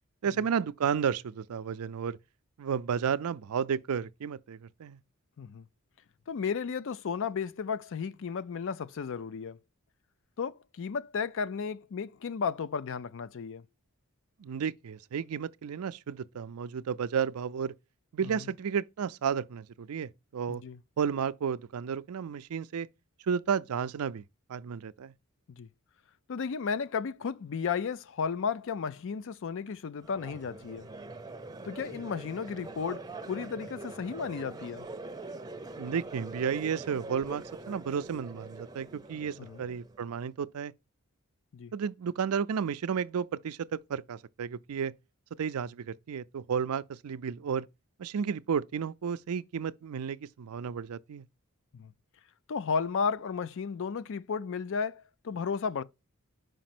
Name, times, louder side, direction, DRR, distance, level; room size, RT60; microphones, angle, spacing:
voice 1, 0.2-2.2 2.6-5.0 14.4-17.7 18.1-20.6 21.0-22.9 23.2-24.2 24.5-25.1 35.8-40.7 41.7-44.9 45.4-47.7 48.0-51.2, right 7 dB, 80° right, 0.4 m, -32 dB
voice 2, 6.3-9.6 10.4-13.6 18.2-18.4 20.5-20.8 25.6-25.7 26.3-30.9 31.6-34.9 39.4-39.6 41.5-41.7 51.7-51.9 52.5-55.8, left 6 dB, 60° left, 0.4 m, -34 dB
Crowd, 30.0-40.2, right 2 dB, 20° right, 0.6 m, -44 dB
5.3 x 5.2 x 5.9 m
head